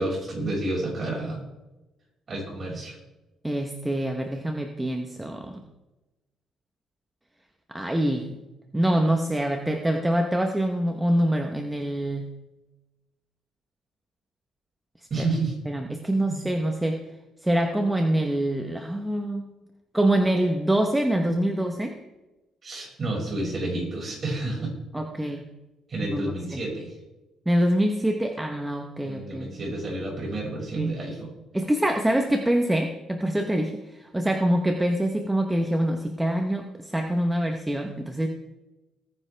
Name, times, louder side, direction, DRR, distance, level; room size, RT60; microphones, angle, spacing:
voice 1, 0.0-1.4 2.3-3.0 15.1-15.5 16.3-16.4 22.6-24.7 25.2-25.3 25.9-27.0 29.0-31.3, right 2 dB, 35° right, -2 dB, 5.6 m, -30 dB
voice 2, 3.4-5.6 7.7-8.4 8.7-12.3 15.2-15.3 15.7-17.0 17.4-19.5 19.9-21.9 24.9-25.5 26.1-26.6 27.5-29.7 30.8-31.0 31.5-38.3, right 1 dB, 10° right, 4 dB, 0.9 m, -25 dB
19.0 x 10.0 x 3.4 m, 1.0 s
cardioid pair, 135°, 0 cm